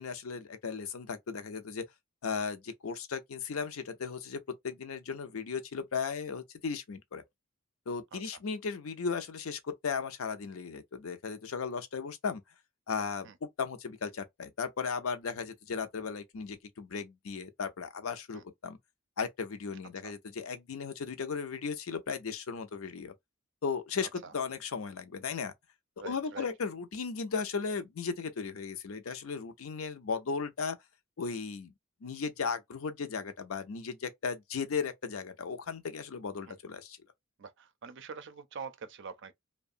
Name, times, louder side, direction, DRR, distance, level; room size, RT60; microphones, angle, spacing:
voice 1, 0.0-1.9 2.2-7.2 7.9-12.4 12.9-18.8 19.2-23.1 23.6-25.5 26.0-30.8 31.2-31.7 32.0-37.0, left 5 dB, 85° left, 0.5 m, -36 dB
voice 2, 26.0-26.5 36.5-36.6 37.4-39.3, right 5 dB, 60° right, 0.5 m, -45 dB
2.7 x 2.1 x 2.5 m
head